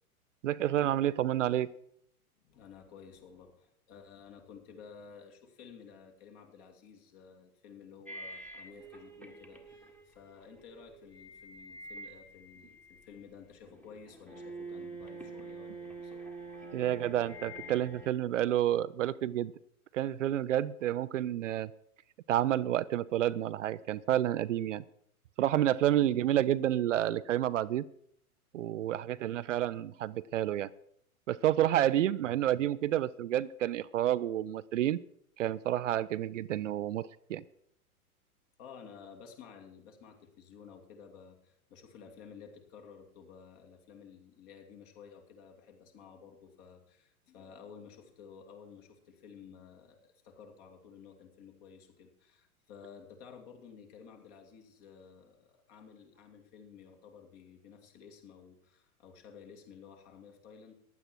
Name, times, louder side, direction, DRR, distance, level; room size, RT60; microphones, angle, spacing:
voice 1, 0.4-1.7 16.7-19.5 19.9-21.7 22.3-24.8 25.4-27.8 28.5-30.7 31.3-35.0 35.4-37.4, right 12 dB, 55° right, 16 dB, 0.6 m, -29 dB
voice 2, 2.4-16.2 38.6-60.7, left 6 dB, 40° left, 3 dB, 2.7 m, -53 dB
sound 1, 8.1-13.3 13.6-18.1, right 2 dB, 5° left, 1.5 m, -47 dB
15.0 x 11.0 x 4.6 m, 0.68 s
figure-of-eight pair, 110°, 44 cm